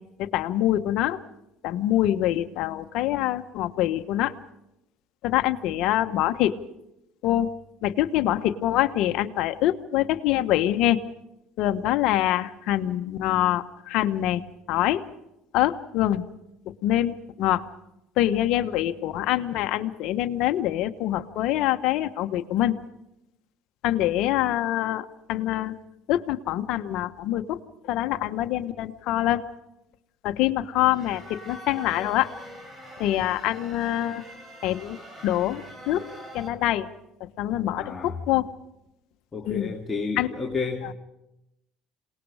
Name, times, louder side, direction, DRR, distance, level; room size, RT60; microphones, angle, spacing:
voice 1, 0.2-1.2 1.6-4.3 5.2-6.5 7.2-7.5 7.8-11.0 11.6-14.4 14.7-15.0 15.5-16.2 16.8-17.6 18.2-22.8 23.8-25.7 26.1-27.6 27.9-29.4 30.2-32.3 33.0-34.2 34.6-35.0 35.2-36.0 36.3-36.9 37.4-38.5 39.5-39.7 40.2-40.3, left 13 dB, 70° left, 8 dB, 1.1 m, -25 dB
sound 1, 30.9-36.5, equal, 25° right, 5.1 m, -43 dB
voice 2, 37.8-38.2 39.3-40.9, left 4 dB, 25° left, -1 dB, 2.4 m, -31 dB
27.5 x 19.5 x 4.9 m, 0.87 s
supercardioid pair, 95°, 0 cm